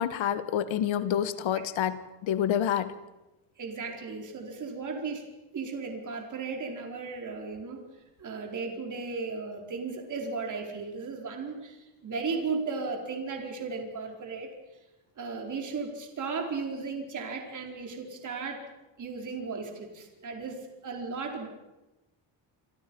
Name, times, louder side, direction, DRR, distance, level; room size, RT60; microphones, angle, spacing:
voice 1, 0.0-2.9, left 10 dB, 75° left, 12 dB, 1.7 m, -28 dB
voice 2, 3.6-7.8 8.2-14.5 15.2-18.6 19.0-21.5, right 4 dB, 40° right, 2 dB, 4.5 m, -35 dB
28.0 x 25.5 x 5.5 m, 1.0 s
cardioid pair, 160°, 47 cm